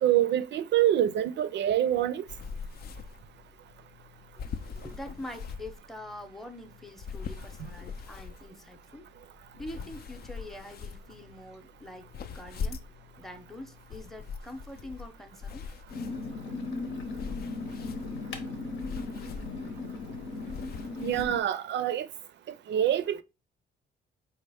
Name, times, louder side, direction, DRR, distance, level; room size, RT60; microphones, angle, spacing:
voice 1, 0.0-2.2 7.6-7.7 21.0-22.1 22.7-23.2, right 11 dB, 65° right, 0.5 m, -26 dB
sound 1, 2.3-21.3, left 5 dB, 50° left, 0.4 m, -43 dB
voice 2, 4.5-9.0 9.6-12.8 13.2-15.6, left 1 dB, ahead, 0.7 m, -44 dB
sound 2, 15.9-21.4, left 3 dB, 75° left, 1.0 m, -37 dB
4.4 x 2.9 x 3.4 m
cardioid pair, 90°, 20 cm